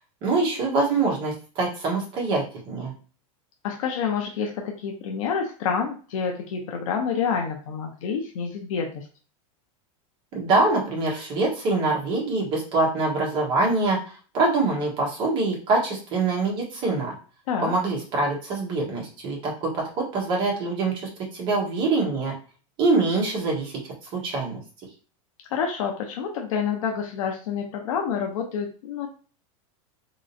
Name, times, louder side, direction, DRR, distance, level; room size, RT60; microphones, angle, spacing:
voice 1, 0.2-2.9 10.3-17.1 17.6-21.0 21.3-22.3 22.8-23.7 24.1-24.6, right 3 dB, 30° right, -2 dB, 1.3 m, -24 dB
voice 2, 3.6-9.0 17.5-17.7 25.5-29.1, left 6 dB, 75° left, 2 dB, 0.8 m, -28 dB
3.6 x 3.1 x 2.7 m, 0.38 s
supercardioid pair, 175°, 17 cm